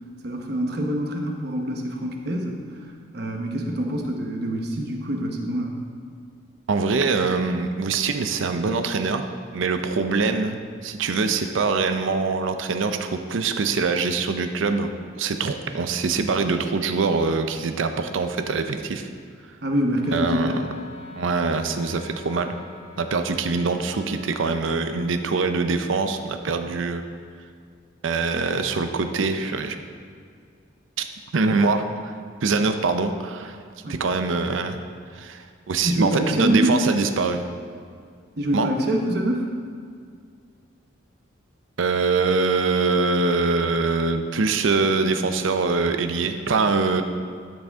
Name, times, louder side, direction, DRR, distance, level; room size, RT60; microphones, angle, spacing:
voice 1, 0.2-2.9 3.1-5.8 19.6-20.7 33.8-34.0 35.8-36.8 38.4-39.5, equal, 55° right, 2 dB, 1.0 m, -25 dB
voice 2, 6.7-9.3 9.5-19.1 20.1-20.6 21.2-22.6 23.0-27.0 28.0-29.8 31.0-31.1 31.3-33.6 33.9-34.8 35.1-37.4 38.5-38.7 41.8-47.0, right 4 dB, 75° right, 7 dB, 0.5 m, -24 dB
Wind instrument woodwind instrument, 20.0-25.2, left 3 dB, 35° left, 0.9 m, -44 dB
12.5 x 6.2 x 3.5 m, 2.2 s
head